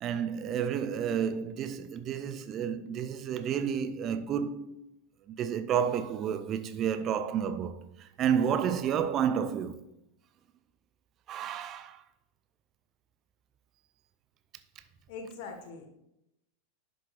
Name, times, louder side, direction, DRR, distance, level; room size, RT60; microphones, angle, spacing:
voice 1, 0.0-4.8 5.3-9.8 11.3-12.0, right 8 dB, 30° right, 0.5 m, -31 dB
voice 2, 15.1-15.9, left 4 dB, 50° left, 1.4 m, -42 dB
11.5 x 6.3 x 2.4 m
figure-of-eight pair, 90°, 0 cm